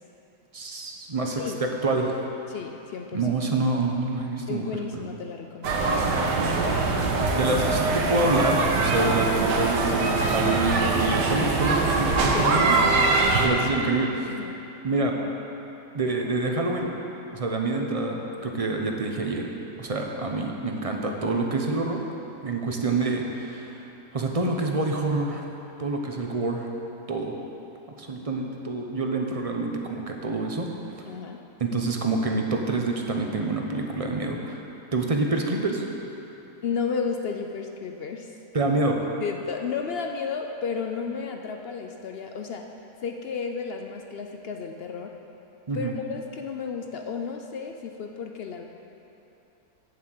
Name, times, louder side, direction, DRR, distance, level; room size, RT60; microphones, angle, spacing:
voice 1, 0.5-2.2 3.1-4.8 7.3-12.8 13.4-14.3 14.8-15.2 15.9-16.9 17.3-19.5 19.8-22.0 22.4-23.8 24.1-25.4 25.8-26.7 27.1-27.3 28.0-30.7 31.6-34.6 34.9-35.8 38.5-39.0 45.7-45.9, right 2 dB, 30° right, 1 dB, 0.6 m, -27 dB
voice 2, 2.5-3.2 4.5-7.1 12.3-13.2 14.3-14.6 31.1-31.4 36.6-38.4 39.2-42.6 43.0-45.1 45.7-48.7, left 5 dB, 75° left, 3 dB, 0.5 m, -33 dB
sound 1, 5.6-13.5, right 3 dB, 90° right, 1.6 m, -23 dB
8.7 x 7.7 x 7.7 m, 2.9 s
omnidirectional pair, 1.8 m